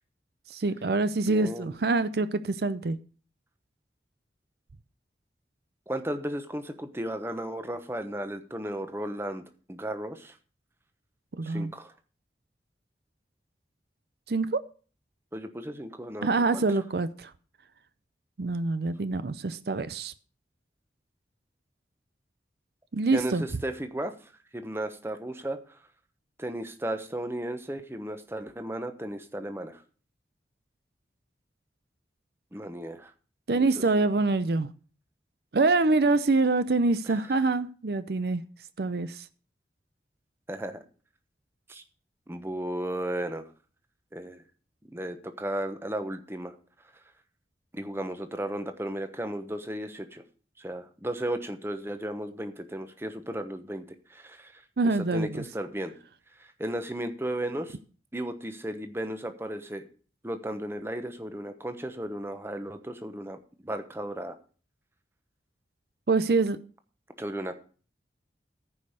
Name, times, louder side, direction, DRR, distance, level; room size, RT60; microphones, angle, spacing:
voice 1, 0.5-3.0 11.4-11.7 14.3-14.6 16.2-17.3 18.4-20.1 22.9-23.4 33.5-34.7 35.5-38.4 38.8-39.2 54.8-55.3 66.1-66.6, right 3 dB, 60° right, 0.5 m, -25 dB
voice 2, 1.2-1.7 5.9-9.4 9.7-10.4 11.4-11.9 15.3-16.3 16.5-16.6 23.1-25.8 26.4-29.8 32.5-33.1 33.5-33.7 37.0-37.2 40.5-40.8 41.7-41.8 42.3-43.4 44.1-44.4 44.9-46.6 47.7-50.2 50.6-55.9 56.4-57.8 58.1-59.9 60.2-64.4 67.2-67.6, right 1 dB, 15° right, 1.0 m, -35 dB
14.5 x 5.4 x 6.5 m
head